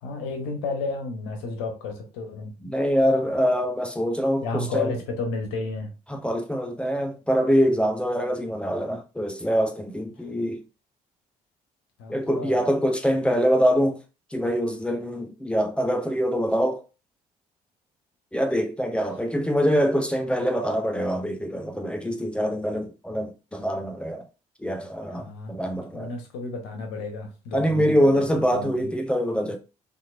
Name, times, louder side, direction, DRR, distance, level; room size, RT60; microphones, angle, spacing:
voice 1, 0.0-2.5 4.4-5.9 10.2-10.3 12.0-12.6 21.2-21.3 25.2-28.2 28.5-28.9, left 3 dB, 65° left, 0.8 m, -32 dB
voice 2, 2.6-4.9 6.1-10.6 12.1-14.0 14.3-16.8 18.3-24.2 24.6-26.1 27.5-29.6, equal, 5° left, 0.5 m, -24 dB
2.9 x 2.5 x 2.4 m
figure-of-eight pair, 50°, 20 cm